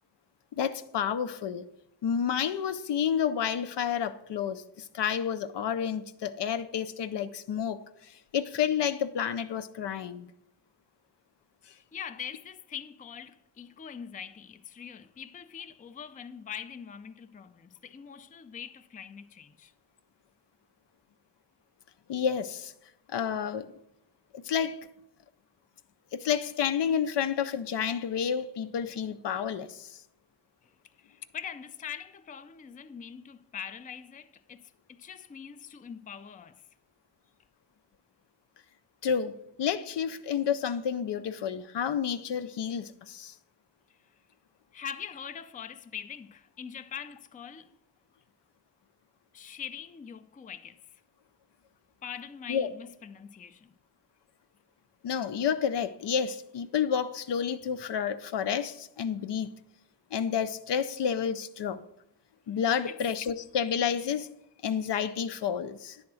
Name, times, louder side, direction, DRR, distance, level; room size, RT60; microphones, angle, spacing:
voice 1, 0.6-1.6 2.0-10.3 22.1-22.7 23.1-23.7 24.3-24.8 26.1-30.0 39.0-43.3 52.5-52.7 55.0-59.5 60.1-61.8 62.5-64.3 64.6-66.0, left 8 dB, 75° left, 0.5 m, -30 dB
voice 2, 11.6-19.7 30.6-36.7 43.9-44.2 44.7-47.7 49.3-51.0 52.0-53.8 62.9-63.0, left 8 dB, 20° left, 0.3 m, -43 dB
9.5 x 3.5 x 6.2 m
cardioid pair, 70°, 42 cm